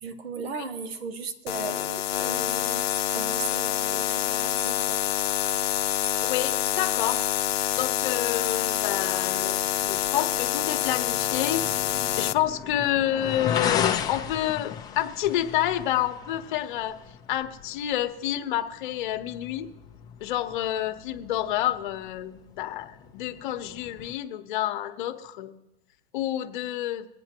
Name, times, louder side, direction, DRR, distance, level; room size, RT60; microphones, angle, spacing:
voice 1, 0.0-5.0, right 5 dB, 85° right, 9 dB, 1.3 m, -37 dB
sound 1, 1.5-12.3, left 12 dB, 85° left, 0.6 m, -27 dB
voice 2, 6.2-7.2 7.7-11.7 12.2-17.0 17.3-19.7 20.2-25.5 26.1-27.1, left 12 dB, 55° left, 7 dB, 1.1 m, -29 dB
sound 2, 10.0-24.1, left 8 dB, 15° left, 0.6 m, -36 dB
23.0 x 8.8 x 3.0 m, 1.0 s
hypercardioid pair, 145°, 30 cm